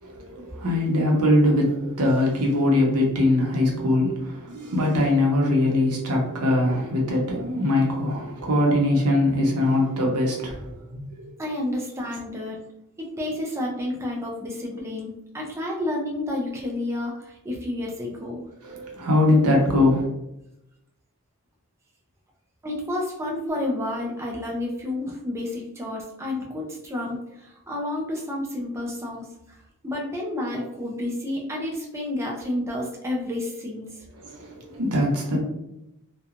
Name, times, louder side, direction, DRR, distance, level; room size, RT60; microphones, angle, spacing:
voice 1, 0.0-11.3 18.6-20.1 34.1-35.4, left 1 dB, 85° right, -1 dB, 0.8 m, -22 dB
voice 2, 11.4-12.6 13.0-18.4 22.6-34.0, left 1 dB, 10° right, -2 dB, 0.4 m, -30 dB
2.9 x 2.2 x 2.4 m, 0.86 s
head